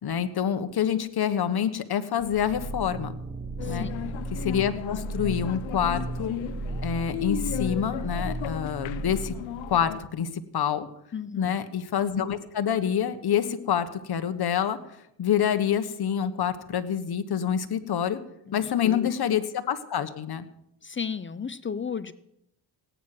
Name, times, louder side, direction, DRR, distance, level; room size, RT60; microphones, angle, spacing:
voice 1, 0.0-3.2 3.7-3.9 4.3-6.4 6.8-9.3 9.7-10.9 11.4-14.8 15.2-18.2 18.5-20.4, left 9 dB, 55° left, 9 dB, 1.5 m, -27 dB
sound 1, 2.2-10.0, right 2 dB, 20° right, 1.0 m, -35 dB
sound 2, 3.6-10.0, left 11 dB, 75° left, 0.8 m, -36 dB
voice 2, 3.6-4.1 11.1-11.6 18.5-19.2 20.8-22.1, left 6 dB, 25° left, 15 dB, 0.6 m, -34 dB
17.5 x 9.5 x 6.0 m, 0.79 s
cardioid pair, 90°, 46 cm